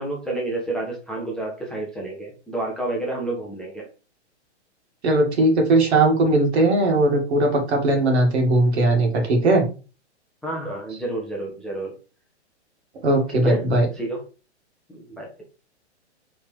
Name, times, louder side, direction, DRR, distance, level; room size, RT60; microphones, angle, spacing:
voice 1, 0.0-3.8 10.4-11.9 13.3-13.7 13.9-14.2 14.9-15.3, right 2 dB, ahead, -3 dB, 0.4 m, -29 dB
voice 2, 5.0-9.6 13.0-13.9, right 2 dB, 65° right, 2 dB, 2.0 m, -19 dB
4.4 x 3.3 x 3.3 m, 0.33 s
hypercardioid pair, 130°, 35 cm